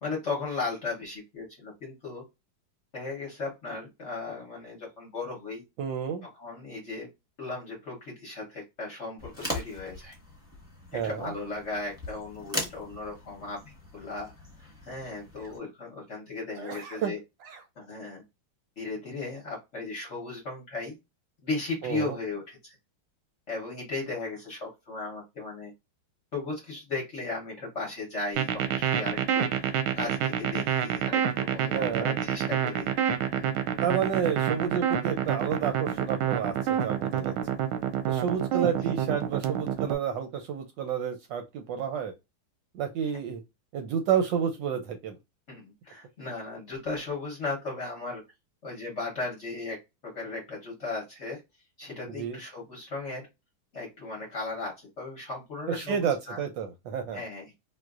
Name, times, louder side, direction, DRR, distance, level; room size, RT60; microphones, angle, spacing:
voice 1, 0.0-2.2 2.9-5.6 6.3-7.1 7.4-10.2 10.9-14.3 14.6-17.2 17.8-18.2 18.8-20.9 21.4-22.8 23.5-25.7 26.3-32.9 33.3-33.5 38.6-38.7 43.0-43.1 45.5-48.2 48.6-49.8 50.0-51.4 51.8-53.2 53.7-56.4 57.1-57.5, left 3 dB, 45° left, 1.0 m, -36 dB
voice 2, 5.8-6.2 10.9-11.3 16.6-17.6 21.8-22.2 31.7-32.1 33.8-37.3 38.1-42.1 42.7-43.4 43.7-45.1 52.1-52.4 55.7-57.2, right 8 dB, 75° right, 1.1 m, -30 dB
sound 1, 9.2-15.6, left 1 dB, ahead, 1.1 m, -40 dB
sound 2, 28.4-39.9, right 9 dB, 90° right, 1.5 m, -27 dB
3.8 x 2.5 x 2.3 m
omnidirectional pair, 2.3 m